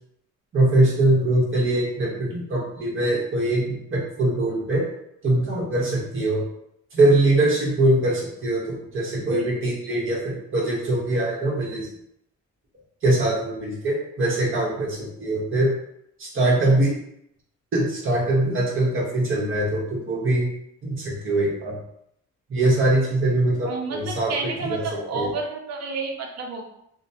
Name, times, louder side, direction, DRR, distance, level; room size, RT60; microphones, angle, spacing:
voice 1, 0.5-4.8 5.2-6.4 6.9-11.9 13.0-15.7 16.2-16.9 17.7-20.5 20.8-21.8 22.5-24.8 25.1-25.3, right 2 dB, 40° right, -3 dB, 1.1 m, -22 dB
voice 2, 23.6-26.7, right 4 dB, 60° right, 2 dB, 0.6 m, -30 dB
3.0 x 2.1 x 2.7 m, 0.76 s
cardioid pair, 90°, 30 cm